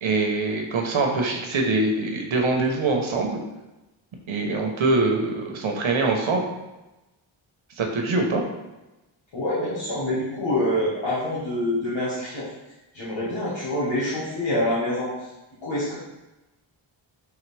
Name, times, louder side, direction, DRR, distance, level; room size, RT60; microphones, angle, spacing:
voice 1, 0.0-3.4 4.3-6.4 7.8-8.4, right 3 dB, 75° right, 2 dB, 0.9 m, -23 dB
voice 2, 9.3-12.5 12.9-15.3 15.6-16.0, left 1 dB, 70° left, -10 dB, 1.4 m, -26 dB
4.8 x 3.3 x 3.3 m, 1.0 s
cardioid pair, 60°, 48 cm